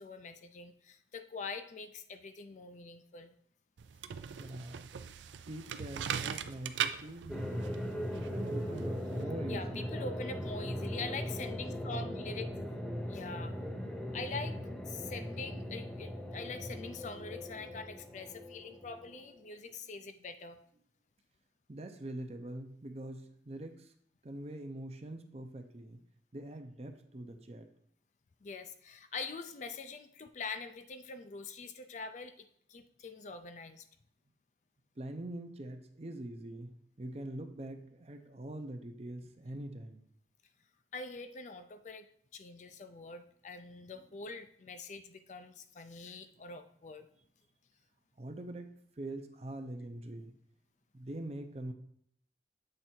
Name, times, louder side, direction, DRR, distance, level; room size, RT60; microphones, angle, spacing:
voice 1, 0.0-3.3 9.5-12.5 13.1-13.6 14.1-14.5 14.9-20.6 28.4-33.9 40.9-42.1 42.3-47.1, left 4 dB, 40° left, 9 dB, 0.4 m, -44 dB
sound 1, 3.8-9.2, right 8 dB, 85° right, 0.4 m, -40 dB
voice 2, 4.4-4.9 5.5-7.9 8.1-10.0 21.7-23.9 24.2-26.0 26.3-27.7 35.0-40.0 48.2-48.7 49.0-50.3 50.9-51.7, right 1 dB, 35° right, 6 dB, 0.6 m, -44 dB
sound 2, 7.3-19.4, equal, 5° left, 0.7 m, -39 dB
7.8 x 3.4 x 4.3 m, 0.66 s
head